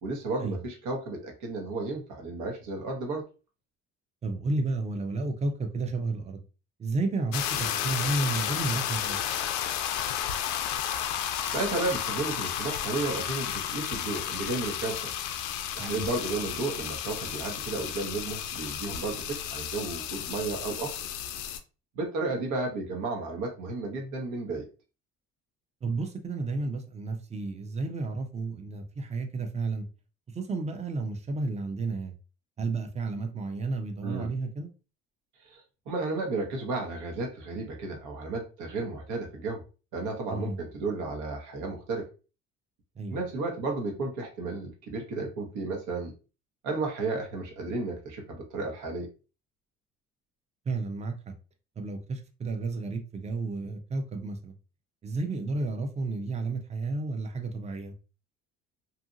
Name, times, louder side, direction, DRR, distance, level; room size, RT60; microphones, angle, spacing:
voice 1, 0.0-3.2 11.5-15.1 15.7-21.1 22.0-24.7 34.0-34.3 35.5-35.6 35.9-39.6 39.9-42.1 43.1-46.1 46.6-49.1, right 3 dB, 75° right, 1.1 m, -33 dB
voice 2, 4.2-6.4 6.8-9.2 15.8-16.0 25.8-29.9 30.3-32.1 32.6-34.7 40.3-40.6 43.0-43.2 50.7-51.3 51.8-54.5 55.0-57.9, right 3 dB, 20° right, 0.5 m, -32 dB
sound 1, 7.3-21.6, left 10 dB, 80° left, 0.5 m, -32 dB
2.8 x 2.5 x 2.5 m
supercardioid pair, 90°, 30 cm